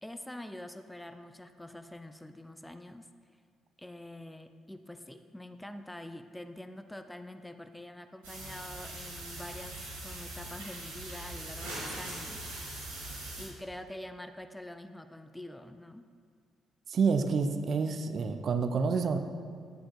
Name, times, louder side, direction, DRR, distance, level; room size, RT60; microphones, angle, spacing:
voice 1, 0.0-3.1 3.8-12.4 13.4-16.1, left 1 dB, 5° left, 8 dB, 0.4 m, -45 dB
sound 1, 8.2-13.5, right 1 dB, 75° right, 1.8 m, -41 dB
voice 2, 16.9-19.2, right 5 dB, 50° right, 7 dB, 0.5 m, -28 dB
12.0 x 8.6 x 2.3 m, 2.1 s
figure-of-eight pair, 45°, 0 cm